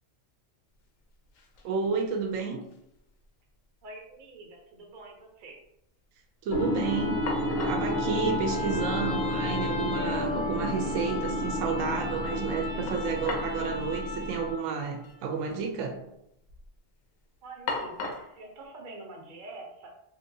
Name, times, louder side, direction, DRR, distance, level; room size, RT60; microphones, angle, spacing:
sound 1, 0.8-0.9 1.1-1.7 2.1-3.0 3.2-3.3 6.8-6.9 7.3-7.9 9.0-9.1 9.5-9.6 12.9-13.6 13.9-14.0 14.9-15.1 15.4-16.0 16.4-16.8 17.7-18.4, left 4 dB, 90° left, 1.0 m, -37 dB
voice 1, 1.6-2.6 6.4-7.3 7.6-16.0, right 5 dB, 85° right, 4 dB, 1.0 m, -31 dB
voice 2, 3.8-5.6 17.4-19.9, right 2 dB, 50° right, 0 dB, 0.7 m, -46 dB
sound 2, 6.5-14.7, left 1 dB, 55° left, 0.6 m, -30 dB
2.8 x 2.8 x 2.6 m, 0.78 s
omnidirectional pair, 1.3 m